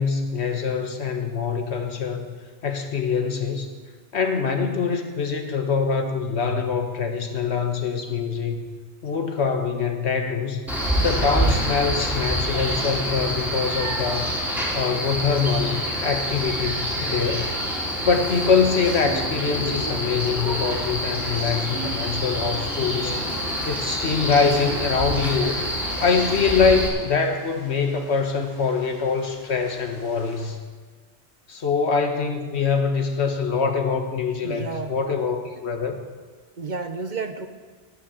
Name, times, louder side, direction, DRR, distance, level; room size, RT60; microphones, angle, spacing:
voice 1, 0.0-2.4 2.6-3.7 4.1-8.6 9.0-10.6 11.0-14.3 14.7-17.5 17.8-23.3 23.6-25.6 26.0-30.6 31.5-36.0, left 5 dB, 75° left, 5 dB, 1.6 m, -24 dB
Male speech man speaking, 10.7-26.9, equal, ahead, 3.2 m, -27 dB
wind in the field in silent provinсial city, 16.1-30.4, right 1 dB, 70° right, 5.9 m, -42 dB
voice 2, 34.4-35.0 36.6-37.5, right 4 dB, 45° right, 8 dB, 0.9 m, -31 dB
17.5 x 6.3 x 8.4 m, 1.4 s
omnidirectional pair, 1.1 m